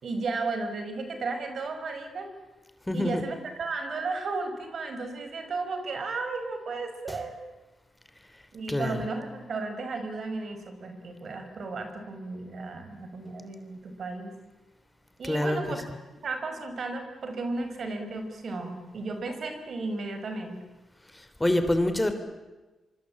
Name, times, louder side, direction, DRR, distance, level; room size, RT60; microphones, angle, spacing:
voice 1, 0.0-2.3 2.9-7.4 8.5-14.3 15.2-15.8 16.2-20.6, right 3 dB, 60° right, 7 dB, 5.3 m, -34 dB
voice 2, 2.9-3.2 7.1-7.2 8.7-9.0 15.2-15.6 21.1-22.1, left 1 dB, 10° left, 9 dB, 3.3 m, -26 dB
25.0 x 24.5 x 8.7 m, 1.2 s
cardioid pair, 70°, 0 cm